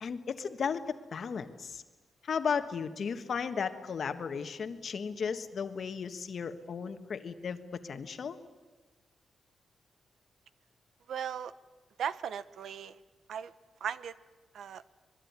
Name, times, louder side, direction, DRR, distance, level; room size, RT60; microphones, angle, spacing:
voice 1, 0.0-1.8 2.2-7.6 7.8-8.4, left 6 dB, 55° left, 9 dB, 1.5 m, -35 dB
voice 2, 11.1-11.5 12.0-13.0 13.3-13.5 13.8-14.1 14.5-14.8, right 8 dB, 80° right, 15 dB, 0.8 m, -37 dB
25.0 x 21.5 x 9.6 m, 1.3 s
wide cardioid pair, 145°, 0 cm